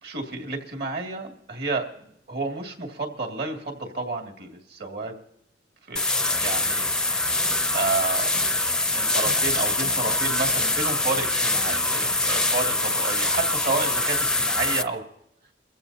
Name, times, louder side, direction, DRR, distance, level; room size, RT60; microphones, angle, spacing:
voice 1, 0.0-5.2 5.8-6.1 6.4-7.3 7.7-8.4 8.8-15.0, right 3 dB, 60° right, 2 dB, 2.4 m, -31 dB
sound 1, 6.0-14.8, left 2 dB, 5° left, 0.6 m, -24 dB
28.5 x 15.0 x 2.8 m, 0.77 s
head